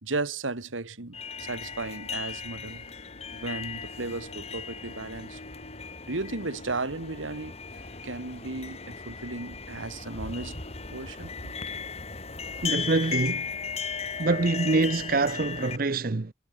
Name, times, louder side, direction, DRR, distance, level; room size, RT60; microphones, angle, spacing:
voice 1, 0.0-2.8 3.3-5.4 6.1-7.6 8.0-10.6 10.9-11.5, right 3 dB, 85° right, 1.9 m, -35 dB
sound 1, 1.1-15.8, left 5 dB, 30° left, 2.4 m, -37 dB
Harp, 2.5-13.5 13.7-13.8, left 2 dB, 50° left, 1.9 m, -52 dB
voice 2, 12.6-13.5 14.2-16.3, right 3 dB, 45° right, 0.7 m, -25 dB
head